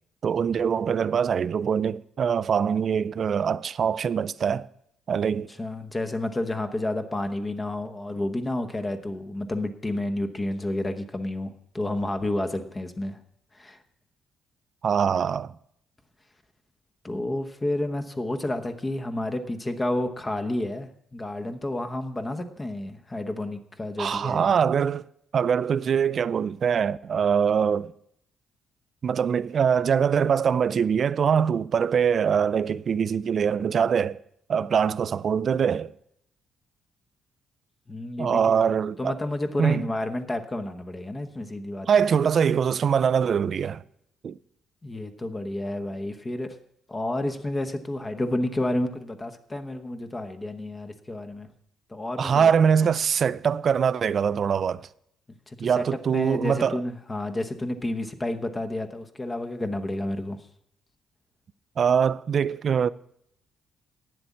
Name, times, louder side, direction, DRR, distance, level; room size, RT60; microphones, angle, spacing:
voice 1, 0.2-4.7 5.1-5.5 14.8-15.5 24.0-25.1 25.3-27.9 29.0-34.2 34.5-35.9 38.2-39.2 39.6-39.9 41.9-43.8 44.2-44.4 52.2-54.9 55.6-56.8 61.8-62.9, right 7 dB, 50° right, 0.4 m, -23 dB
voice 2, 5.3-13.2 13.5-13.8 17.0-24.5 37.9-38.6 39.0-41.9 44.8-46.6 46.9-51.5 51.9-52.5 55.5-55.8 56.1-60.4, left 1 dB, 20° left, 1.0 m, -30 dB
9.0 x 7.7 x 8.4 m
cardioid pair, 90°, 0 cm